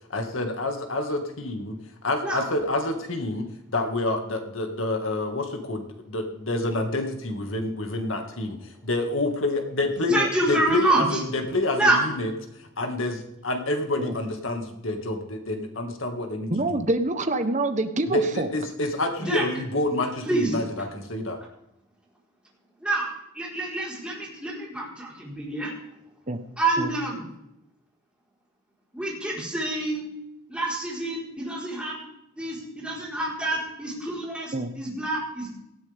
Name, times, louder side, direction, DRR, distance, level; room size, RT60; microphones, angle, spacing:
voice 1, 0.1-1.8 2.0-10.2 10.5-12.3 12.8-16.8 18.1-21.4, left 2 dB, 65° left, 4 dB, 2.3 m, -28 dB
voice 2, 10.1-11.2 11.7-12.0 19.2-19.5 20.2-20.5 22.8-25.7 26.6-27.3 28.9-30.1 30.5-32.0 32.4-35.5, right 2 dB, 5° right, -4 dB, 4.8 m, -27 dB
voice 3, 16.5-18.5 26.3-26.4 26.8-26.9 34.5-34.7, right 2 dB, 35° right, 8 dB, 1.3 m, -26 dB
18.5 x 13.5 x 3.7 m, 0.84 s
head